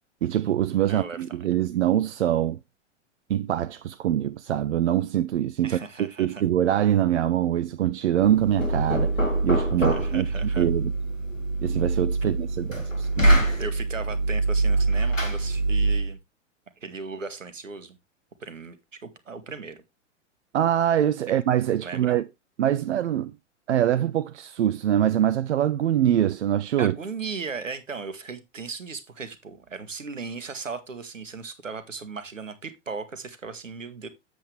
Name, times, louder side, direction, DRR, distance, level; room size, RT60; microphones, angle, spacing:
voice 1, 0.2-2.6 3.3-9.1 9.4-10.3 10.6-10.9 11.6-13.6 20.5-22.2 22.6-23.3 23.7-26.9, right 11 dB, 65° right, 0.5 m, -24 dB
voice 2, 0.9-1.4 5.6-6.4 9.8-10.7 12.2-12.3 13.6-16.2 16.8-18.0 18.4-19.8 21.8-22.2 26.8-34.1, right 4 dB, 80° right, 1.3 m, -37 dB
Knock, 8.2-16.1, right 2 dB, 90° left, 2.1 m, -24 dB
7.7 x 7.6 x 3.2 m
figure-of-eight pair, 100°, 38 cm